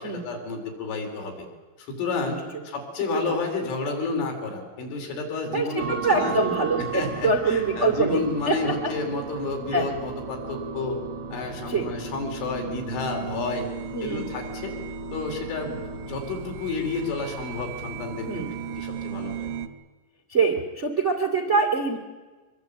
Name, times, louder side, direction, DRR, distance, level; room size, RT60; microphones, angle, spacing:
voice 1, 0.0-1.5 1.8-6.4 6.9-11.0 11.3-13.7 14.0-14.8 15.1-18.3 18.8-19.5, left 3 dB, 70° left, 2 dB, 6.7 m, -31 dB
voice 2, 5.5-8.6 8.8-8.9 9.7-9.9 11.7-11.9 13.9-14.3 18.3-18.5 20.3-22.0, right 3 dB, 35° right, 3 dB, 1.0 m, -24 dB
sound 1, 5.8-19.7, right 6 dB, 75° right, 3.3 m, -35 dB
25.0 x 22.0 x 8.5 m, 1.3 s
omnidirectional pair, 5.8 m